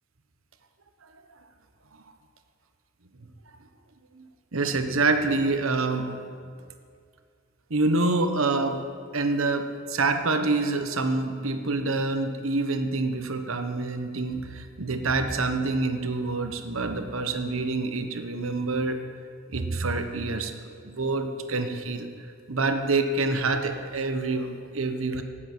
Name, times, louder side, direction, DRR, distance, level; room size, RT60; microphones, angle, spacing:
voice 1, 4.5-6.1 7.7-8.8 9.1-19.0 19.5-20.5 20.8-22.1 22.5-25.2, right 3 dB, 70° right, 7 dB, 1.1 m, -26 dB
18.5 x 8.0 x 6.1 m, 2.2 s
head